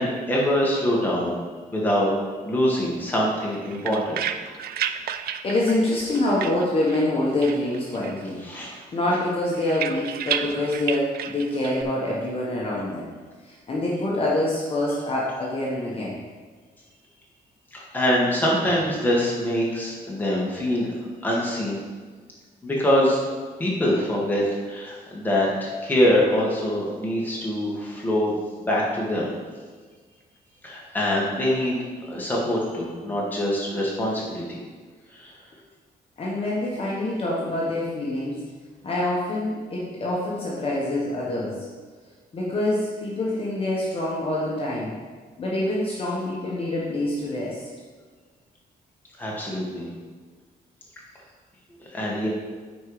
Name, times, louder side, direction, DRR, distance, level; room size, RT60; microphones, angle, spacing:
voice 1, 0.0-1.4 1.7-2.1 2.4-4.2 8.4-8.8 17.7-20.9 21.2-21.8 22.6-23.2 23.6-29.3 30.6-31.8 32.1-34.6 35.1-35.3 49.2-49.9 51.9-52.3, equal, 10° left, -4 dB, 1.9 m, -24 dB
sound 1, 3.4-7.1 7.4-8.3 8.6-11.8, right 9 dB, 70° right, 0.5 m, -32 dB
voice 2, 5.4-13.1 13.4-16.2 36.2-38.4 38.8-41.7 42.3-45.0 45.4-47.6, left 1 dB, 35° left, -5 dB, 1.4 m, -26 dB
9.1 x 4.5 x 5.0 m, 1.5 s
cardioid pair, 150°, 16 cm